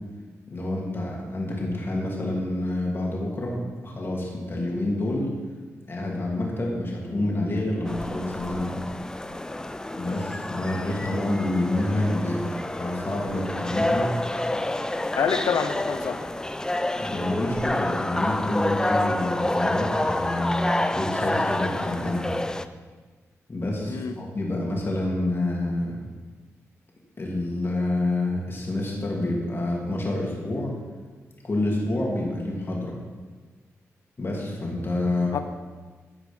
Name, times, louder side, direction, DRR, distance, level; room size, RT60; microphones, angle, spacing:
voice 1, 0.5-5.3 5.9-8.8 10.0-12.4 12.8-14.1 17.0-22.3 23.5-26.0 27.2-30.7 31.4-32.9 34.2-35.4, left 1 dB, 45° left, -2 dB, 2.8 m, -28 dB
sound 1, 7.8-22.6, left 1 dB, 10° left, 0.5 m, -28 dB
voice 2, 15.1-16.3 23.8-24.1 35.3-35.4, left 6 dB, 75° left, 9 dB, 0.7 m, -26 dB
13.5 x 4.9 x 5.4 m, 1.4 s
cardioid pair, 65°, 6 cm